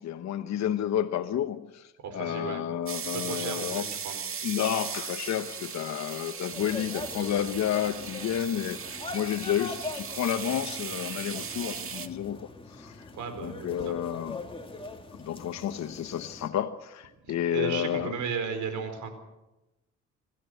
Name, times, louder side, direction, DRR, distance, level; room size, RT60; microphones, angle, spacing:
voice 1, 0.0-3.9 4.4-13.1 13.4-14.4 15.1-18.1, left 10 dB, 65° left, 1.1 m, -31 dB
voice 2, 2.0-2.6 3.1-4.2 13.1-13.9 17.2-19.1, right 6 dB, 75° right, 4.6 m, -35 dB
sound 1, 2.9-12.1, right 7 dB, 45° right, 1.7 m, -38 dB
sound 2, 6.5-16.5, left 3 dB, 15° left, 2.7 m, -42 dB
28.0 x 13.0 x 8.0 m
cardioid pair, 90°, 30 cm